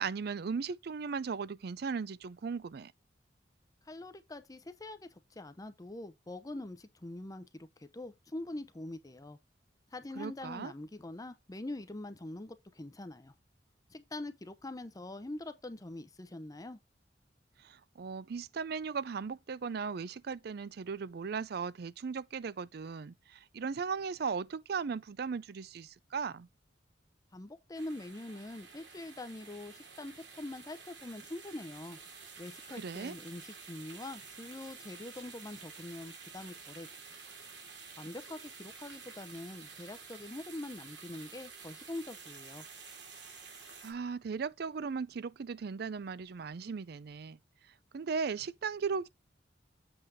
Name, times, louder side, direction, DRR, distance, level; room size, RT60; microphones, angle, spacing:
voice 1, 0.0-2.9 10.2-10.7 17.6-26.5 32.7-33.2 43.8-47.4 47.9-49.1, right 5 dB, 60° right, 0.4 m, -37 dB
voice 2, 3.8-9.4 9.9-13.3 13.9-16.8 27.3-32.0 32.4-36.9 38.0-42.7, left 1 dB, 20° left, 0.6 m, -44 dB
sound 1, 27.7-43.9, right 5 dB, 80° right, 2.5 m, -51 dB
7.9 x 4.0 x 4.7 m
head